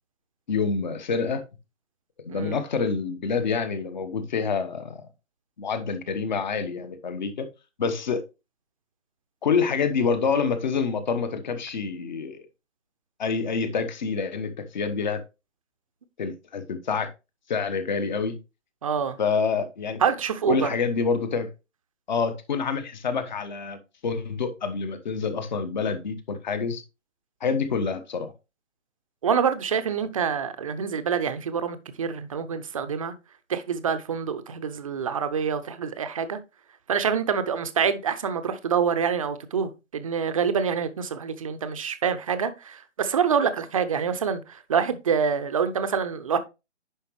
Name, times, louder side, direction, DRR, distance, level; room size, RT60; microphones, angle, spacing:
voice 1, 0.5-1.4 2.2-5.0 5.6-7.5 7.8-8.2 9.4-12.5 13.2-15.2 16.2-17.1 17.5-18.4 19.2-20.0 20.5-21.5 22.1-26.8 27.4-28.3, left 5 dB, 40° left, 1.2 m, -27 dB
voice 2, 2.3-2.6 18.8-19.2 20.0-20.7 29.2-33.1 33.5-36.4 36.9-46.4, right 6 dB, 30° right, 0.7 m, -26 dB
10.0 x 5.2 x 3.1 m
figure-of-eight pair, 140°, 36 cm